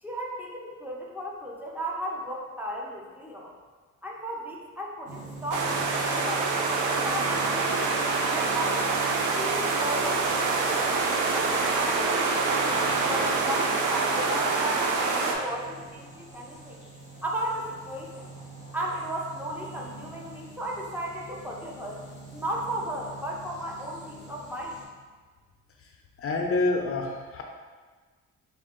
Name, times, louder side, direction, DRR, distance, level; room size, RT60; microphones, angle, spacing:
voice 1, 0.0-3.5 4.0-8.9 9.4-10.8 11.3-16.8 17.2-18.3 18.7-22.0 22.3-24.8, right 1 dB, 5° right, -3 dB, 0.6 m, -35 dB
sound 1, 5.1-24.8, right 1 dB, 25° right, 1.1 m, -44 dB
sound 2, 5.5-15.3, right 4 dB, 85° right, 0.5 m, -26 dB
voice 2, 26.2-27.4, left 3 dB, 50° left, 1 dB, 0.5 m, -27 dB
3.5 x 2.4 x 3.6 m, 1.4 s
cardioid pair, 90°, 30 cm